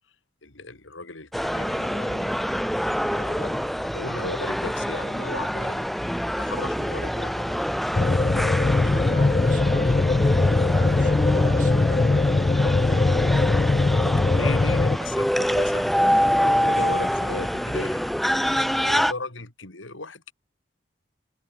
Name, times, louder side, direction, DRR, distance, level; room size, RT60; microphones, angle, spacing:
voice 1, 0.4-2.4 3.0-5.8 6.4-7.8 8.8-9.5 11.0-11.3 14.4-18.0 18.8-20.3, left 3 dB, 85° left, 3.3 m, -37 dB
sound 1, 1.3-19.1, equal, ahead, 2.0 m, -26 dB
sound 2, 7.9-15.0, left 3 dB, 25° left, 0.3 m, -21 dB
voice 2, 8.8-13.4 14.1-14.6 18.4-18.8, right 2 dB, 45° right, 5.2 m, -42 dB
head